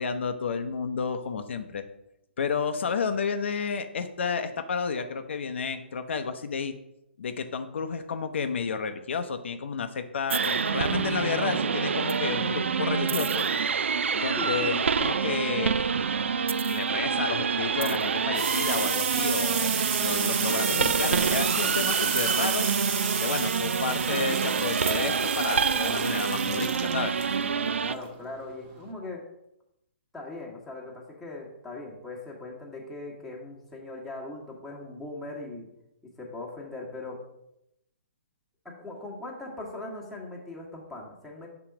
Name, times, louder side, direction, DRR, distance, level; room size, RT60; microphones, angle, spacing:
voice 1, 0.0-1.8 2.4-6.7 7.2-13.5 14.1-15.8 16.2-22.7 23.2-27.1, left 5 dB, 75° left, 8 dB, 0.6 m, -31 dB
sound 1, 10.3-27.9, right 6 dB, 90° right, 0.4 m, -27 dB
voice 2, 14.3-14.7 27.6-29.2 30.1-35.6 36.2-37.2 38.6-41.5, left 2 dB, ahead, -4 dB, 1.4 m, -40 dB
sound 2, 17.6-28.9, right 6 dB, 30° right, 0.8 m, -32 dB
6.0 x 3.8 x 5.8 m, 0.83 s
hypercardioid pair, 145°, 6 cm